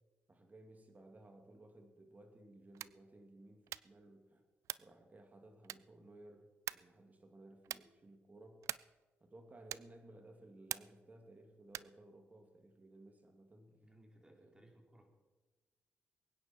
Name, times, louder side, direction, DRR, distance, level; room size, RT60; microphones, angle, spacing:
voice 1, 0.3-4.4 4.8-8.6 9.2-13.7 14.3-14.5, right 1 dB, 30° right, 5 dB, 2.6 m, -59 dB
sound 1, 2.7-3.1 3.6-4.0 4.6-5.0 5.6-6.0 6.7-7.0 7.6-8.0 8.6-9.0 9.7-10.0 10.7-11.1 11.7-12.0, right 12 dB, 80° right, 0.3 m, -45 dB
voice 2, 13.6-15.1, right 1 dB, 15° right, 1 dB, 3.7 m, -64 dB
22.5 x 9.8 x 4.5 m, 1.2 s
cardioid pair, 70°, 5 cm